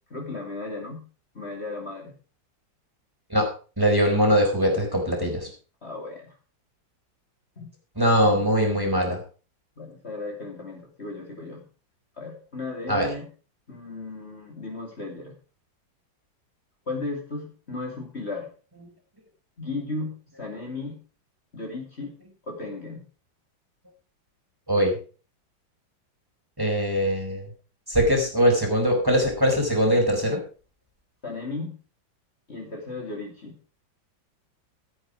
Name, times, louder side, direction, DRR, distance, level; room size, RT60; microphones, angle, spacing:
voice 1, 0.1-1.0 1.3-2.1 5.8-6.4 7.6-7.7 8.2-8.4 9.8-11.6 12.2-13.3 13.7-15.3 16.9-18.5 19.6-21.0 21.5-22.1 22.4-23.0 31.2-31.8 32.5-33.6, left 3 dB, 35° left, -1 dB, 3.0 m, -35 dB
voice 2, 3.8-5.5 8.0-9.2 12.9-13.1 24.7-24.9 26.6-27.4 27.9-30.4, equal, 10° right, 1 dB, 4.4 m, -21 dB
13.0 x 9.7 x 4.9 m, 0.37 s
omnidirectional pair, 2.1 m